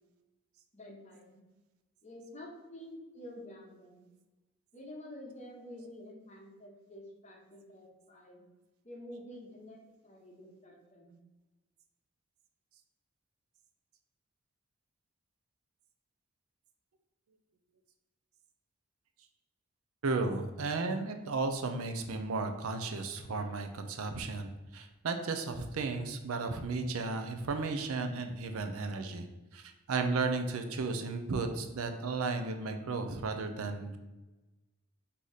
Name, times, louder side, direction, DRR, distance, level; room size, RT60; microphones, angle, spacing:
voice 1, 0.7-1.4 2.0-4.0 4.7-8.4 8.8-9.8 10.0-11.1, left 1 dB, 30° left, -1 dB, 0.9 m, -49 dB
voice 2, 20.0-29.3 29.5-34.0, right 3 dB, 75° right, 6 dB, 0.5 m, -34 dB
4.0 x 2.8 x 4.8 m, 1.1 s
head